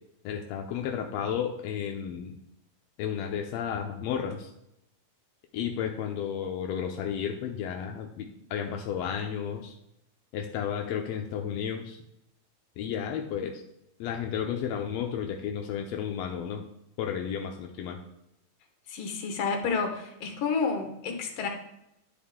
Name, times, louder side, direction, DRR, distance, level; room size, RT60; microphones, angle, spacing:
voice 1, 0.2-2.3 3.0-4.5 5.5-9.7 10.3-12.0 12.8-13.6 14.0-16.6 17.0-18.0, left 8 dB, 80° left, 2 dB, 1.5 m, -32 dB
voice 2, 18.9-21.5, left 5 dB, 60° left, 4 dB, 1.9 m, -30 dB
10.5 x 4.4 x 3.6 m, 0.82 s
omnidirectional pair, 3.5 m